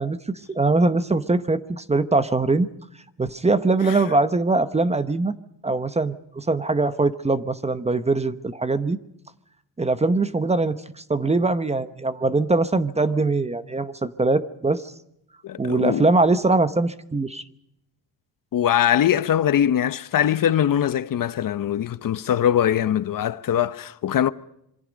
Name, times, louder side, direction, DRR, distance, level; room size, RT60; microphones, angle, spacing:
voice 1, 0.0-2.7 3.2-5.4 5.6-9.0 9.8-14.8 15.6-17.4, right 3 dB, 15° right, 0.9 m, -22 dB
voice 2, 15.4-16.1 18.5-24.3, left 10 dB, 50° left, 0.9 m, -22 dB
26.5 x 23.0 x 5.2 m
cardioid pair, 150°, 41 cm